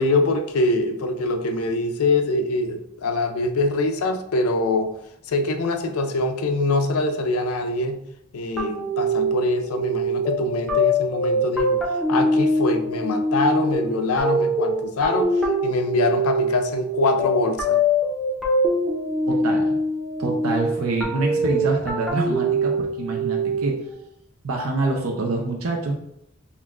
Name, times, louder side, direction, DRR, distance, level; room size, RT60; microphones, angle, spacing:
voice 1, 0.0-4.9 5.3-8.0 8.3-11.8 12.1-15.3 15.6-17.8, left 2 dB, 80° left, 7 dB, 0.5 m, -23 dB
sound 1, 8.6-23.9, equal, ahead, 0.6 m, -23 dB
voice 2, 19.3-19.8 20.2-23.7 24.4-25.9, right 3 dB, 75° right, 0 dB, 0.6 m, -26 dB
5.4 x 2.4 x 2.4 m, 0.77 s
head